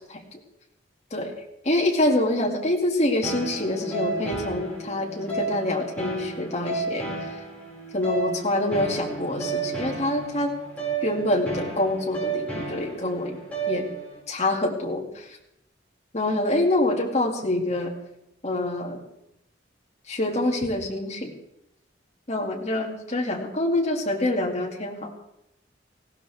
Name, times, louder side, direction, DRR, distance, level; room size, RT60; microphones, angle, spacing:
voice 1, 1.6-7.3 7.9-10.6 11.0-13.4 13.7-13.9 14.3-15.3 16.1-17.9 18.4-19.0 20.1-21.3 22.3-25.1, left 1 dB, 35° left, -1 dB, 2.4 m, -26 dB
sound 1, 3.2-14.2, right 3 dB, 10° left, 5.5 m, -32 dB
19.5 x 16.0 x 3.5 m, 0.83 s
head